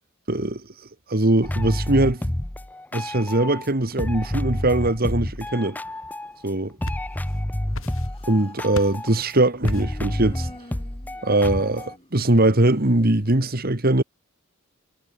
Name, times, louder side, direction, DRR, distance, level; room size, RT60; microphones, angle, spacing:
voice 1, 0.3-0.6 1.1-2.2 2.9-5.8 6.4-6.7 8.3-10.5 11.2-14.0, right 1 dB, 45° right, 2.0 m, -21 dB
sound 1, 1.4-3.7 4.0-6.5 6.8-11.9, left 1 dB, 10° left, 0.5 m, -29 dB
sound 2, 6.5-7.4 7.7-8.3 8.7-9.1 9.7-10.1, left 1 dB, 70° left, 5.0 m, -35 dB
Human voice, 7.7-8.7 9.8-12.6, left 1 dB, 25° left, 5.6 m, -47 dB
head